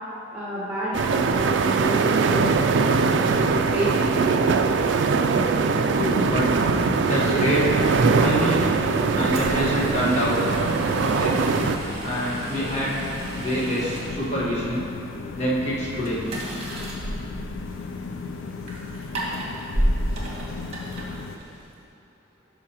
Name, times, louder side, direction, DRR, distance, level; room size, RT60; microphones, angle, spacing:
voice 1, 0.3-2.5 2.8-3.3 3.7-4.4, equal, 10° right, -10 dB, 1.3 m, -30 dB
sound 1, 0.9-11.8, right 4 dB, 65° right, 0.4 m, -21 dB
voice 2, 5.9-6.5 7.0-7.8 8.2-8.7 9.1-10.6 11.0-11.4 12.0-13.0 13.3-14.8 15.3-16.2, equal, 35° left, -7 dB, 1.6 m, -26 dB
sound 2, 6.5-21.4, left 4 dB, 75° left, 0.4 m, -36 dB
sound 3, 9.3-21.8, right 1 dB, 30° right, 1.3 m, -33 dB
12.0 x 5.5 x 2.9 m, 2.7 s
head